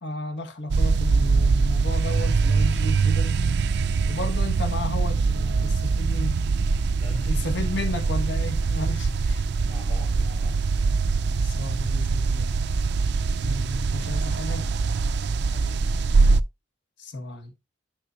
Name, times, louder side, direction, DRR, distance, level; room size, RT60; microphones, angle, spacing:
voice 1, 0.0-3.3 4.1-6.4 7.2-9.5 11.0-12.6 13.4-14.7 17.0-17.5, left 1 dB, 65° left, 1.7 m, -33 dB
sound 1, 0.7-16.4, right 4 dB, 60° right, 0.4 m, -23 dB
voice 2, 6.9-8.1 9.5-10.6 13.4-14.1 15.5-16.0, left 1 dB, 30° left, 3.0 m, -44 dB
10.0 x 5.9 x 2.8 m
head